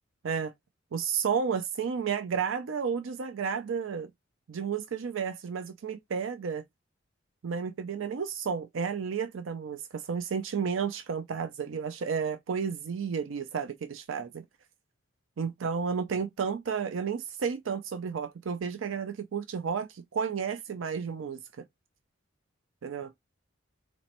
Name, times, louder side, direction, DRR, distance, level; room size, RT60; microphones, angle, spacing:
voice 1, 0.9-4.1 4.5-6.6 7.4-14.5 15.4-21.4 22.8-23.1, right 6 dB, 75° right, 0.5 m, -32 dB
4.1 x 3.0 x 2.9 m
head